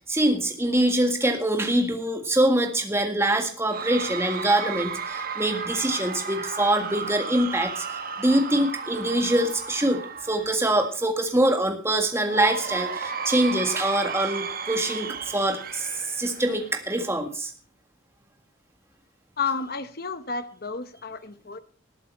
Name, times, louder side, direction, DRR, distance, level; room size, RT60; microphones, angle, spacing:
voice 1, 0.1-17.5, right 1 dB, 15° right, 4 dB, 1.8 m, -24 dB
Cheering / Crowd, 3.7-11.0 12.3-17.0, right 5 dB, 45° right, 1.1 m, -34 dB
voice 2, 19.4-21.6, left 5 dB, 50° left, 12 dB, 0.9 m, -31 dB
19.0 x 8.5 x 4.5 m, 0.42 s
head